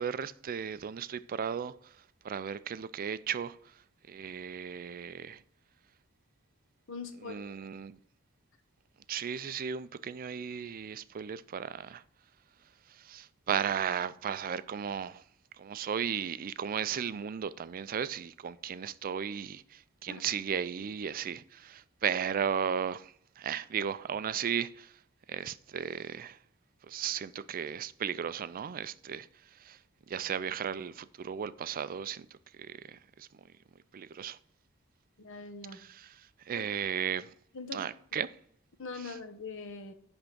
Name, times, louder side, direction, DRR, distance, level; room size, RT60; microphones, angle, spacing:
voice 1, 0.0-1.9 2.2-3.7 4.1-5.4 7.2-8.0 9.1-12.0 12.9-15.2 15.6-24.9 25.3-26.4 26.9-29.8 30.1-32.3 32.6-33.3 33.9-34.4 35.7-37.3 37.7-38.4 39.0-39.2, right 7 dB, 40° right, 0.4 m, -35 dB
voice 2, 6.9-7.5 20.1-20.2 35.2-35.8 36.5-36.6 37.5-37.9 38.8-39.9, left 4 dB, 60° left, 1.0 m, -42 dB
10.5 x 3.6 x 5.8 m
head